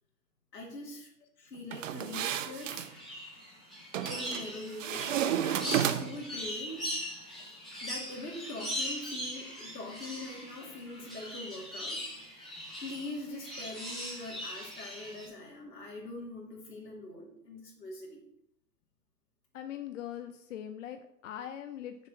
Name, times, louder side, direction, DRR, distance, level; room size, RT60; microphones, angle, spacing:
voice 1, 0.5-1.1 1.4-2.8 4.0-6.8 7.8-12.0 12.8-18.2, left 2 dB, 90° left, -3 dB, 2.3 m, -43 dB
sound 1, 1.7-2.9 3.9-4.4 4.8-6.3, right 10 dB, 50° right, 0.7 m, -32 dB
sound 2, 2.6-15.2, equal, ahead, 0.3 m, -40 dB
voice 2, 19.5-22.1, left 10 dB, 50° left, 8 dB, 0.6 m, -42 dB
6.8 x 4.4 x 6.0 m, 0.74 s
hypercardioid pair, 120°, 48 cm